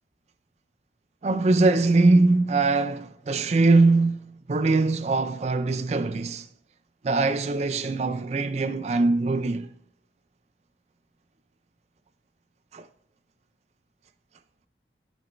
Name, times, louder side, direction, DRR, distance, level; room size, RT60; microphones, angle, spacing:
voice 1, 1.2-6.5 7.0-9.7 12.7-12.8, right 3 dB, 35° right, 0.4 m, -22 dB
14.0 x 5.2 x 2.5 m
head